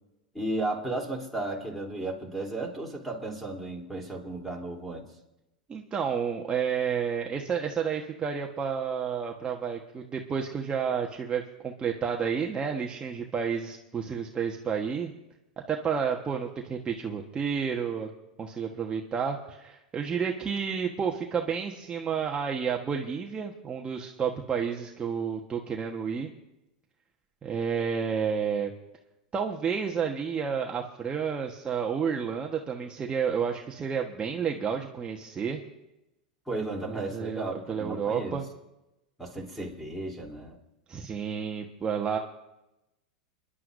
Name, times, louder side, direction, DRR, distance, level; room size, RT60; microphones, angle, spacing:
voice 1, 0.3-5.1 36.5-38.4 39.2-40.6, right 2 dB, 5° left, 1 dB, 3.4 m, -34 dB
voice 2, 5.7-15.1 15.7-18.1 18.4-26.3 27.4-28.7 29.3-35.6 36.9-38.4 40.9-42.2, right 6 dB, 25° right, 1 dB, 1.3 m, -30 dB
30.0 x 11.0 x 2.7 m, 0.94 s
hypercardioid pair, 100°, 4 cm